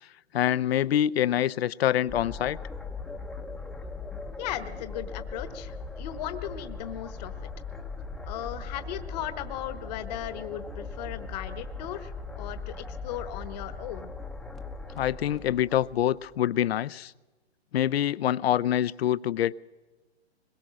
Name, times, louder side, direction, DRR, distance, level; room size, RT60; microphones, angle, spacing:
voice 1, 0.3-2.6 15.0-17.1 17.7-19.6, left 11 dB, 65° left, 17 dB, 0.6 m, -25 dB
sound 1, 2.1-16.3, left 3 dB, ahead, 0.7 m, -39 dB
voice 2, 4.4-7.5 8.3-14.1, left 12 dB, 40° left, 11 dB, 1.1 m, -37 dB
22.5 x 21.5 x 6.3 m, 1.2 s
hypercardioid pair, 135°, 33 cm